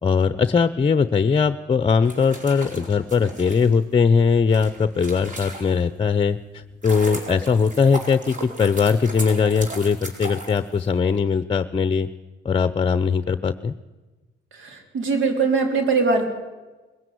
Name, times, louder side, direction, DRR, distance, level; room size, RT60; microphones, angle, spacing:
voice 1, 0.0-12.1 12.4-13.7, left 5 dB, 30° left, 12 dB, 0.8 m, -20 dB
sound 1, 1.9-6.0 6.5-11.2, right 1 dB, 40° right, 4.5 m, -36 dB
voice 2, 14.5-16.3, right 4 dB, 80° right, 5 dB, 3.9 m, -21 dB
21.0 x 15.5 x 9.4 m, 1.2 s
cardioid pair, 90°, 20 cm